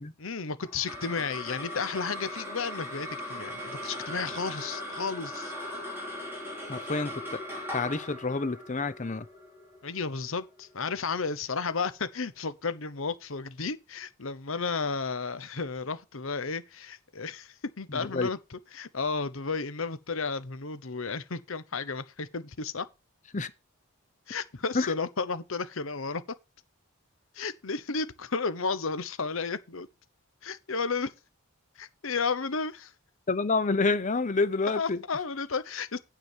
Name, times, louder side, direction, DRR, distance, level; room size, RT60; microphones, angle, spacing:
voice 1, 0.2-5.5 9.8-18.4 18.7-22.9 24.3-26.2 27.3-29.9 30.4-31.1 31.8-32.9 34.7-36.0, left 4 dB, 70° left, 0.9 m, -33 dB
sound 1, 0.6-11.2, left 1 dB, 10° right, 6.1 m, -39 dB
voice 2, 6.7-7.4 7.7-9.3 17.9-18.3 23.3-23.5 24.7-24.9 33.3-35.0, left 3 dB, 35° left, 0.7 m, -28 dB
9.4 x 4.9 x 7.3 m
head